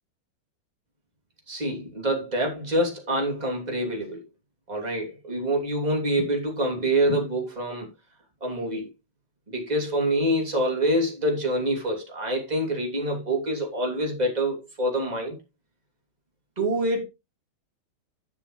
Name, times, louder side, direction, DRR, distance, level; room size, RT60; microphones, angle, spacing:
voice 1, 1.5-4.2 4.7-7.9 8.4-8.9 9.5-15.4 16.6-17.0, right 1 dB, 20° right, 3.0 m, -26 dB
11.0 x 7.6 x 3.2 m
omnidirectional pair, 2.4 m